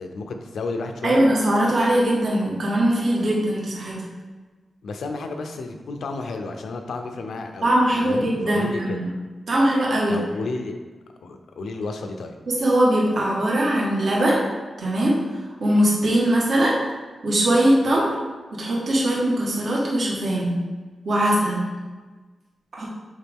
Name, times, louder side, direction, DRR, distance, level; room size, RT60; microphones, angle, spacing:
voice 1, 0.0-1.3 4.8-9.0 10.1-10.8 11.2-12.4, left 3 dB, 80° left, 5 dB, 0.7 m, -32 dB
voice 2, 1.0-4.0 7.6-9.1 9.5-10.2 12.5-14.4 14.8-16.7 17.2-18.1 18.5-20.5 21.0-21.7 22.7-22.9, right 1 dB, 55° right, -4 dB, 1.5 m, -21 dB
7.3 x 4.7 x 3.6 m, 1.3 s
wide cardioid pair, 150°, 0 cm